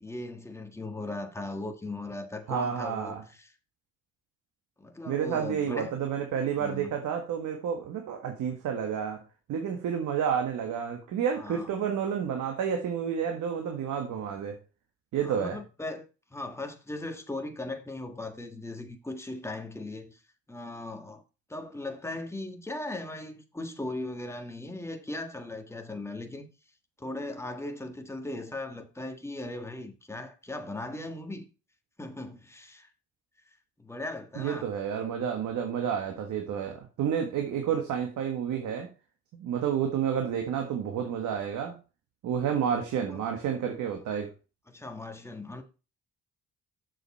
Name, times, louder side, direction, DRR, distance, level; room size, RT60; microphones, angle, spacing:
voice 1, 0.0-3.5 4.8-5.9 6.6-6.9 11.4-11.7 15.2-20.2 20.5-21.2 21.5-26.5 27.0-31.4 32.0-32.9 33.8-34.7 43.1-43.2 44.7-45.6, left 2 dB, 10° left, 1.6 m, -38 dB
voice 2, 2.5-3.2 5.1-9.2 9.5-14.6 15.1-15.6 34.4-38.9 39.3-41.8 42.2-44.3, right 8 dB, 80° right, 1.7 m, -30 dB
7.1 x 6.7 x 4.2 m
cardioid pair, 90°, 30 cm